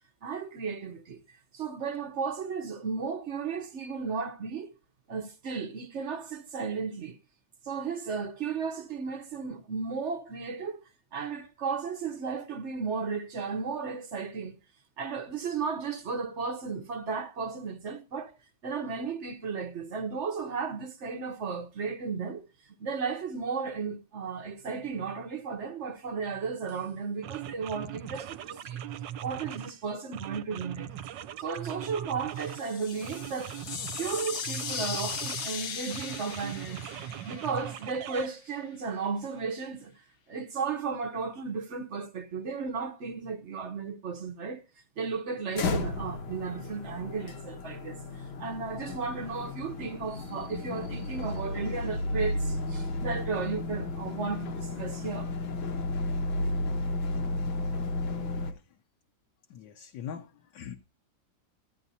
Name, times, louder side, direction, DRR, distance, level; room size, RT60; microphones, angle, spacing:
voice 1, 0.2-1.2 1.5-4.7 5.1-7.2 7.6-10.8 11.1-14.6 15.0-18.3 18.6-28.8 29.2-30.9 31.4-33.6 34.0-39.9 40.3-44.6 45.0-55.3, right 5 dB, 50° right, 0.9 m, -34 dB
sound 1, 26.7-26.8 27.2-29.8 30.1-32.7 33.0-35.5 35.9-38.3, right 10 dB, 75° right, 1.3 m, -40 dB
sound 2, 32.3-38.2, left 7 dB, 55° left, 0.9 m, -38 dB
sound 3, 45.5-58.5, left 2 dB, 85° left, 2.1 m, -33 dB
voice 2, 59.5-60.3 60.5-60.8, left 8 dB, 70° left, 1.3 m, -40 dB
14.0 x 11.0 x 2.7 m
omnidirectional pair, 2.1 m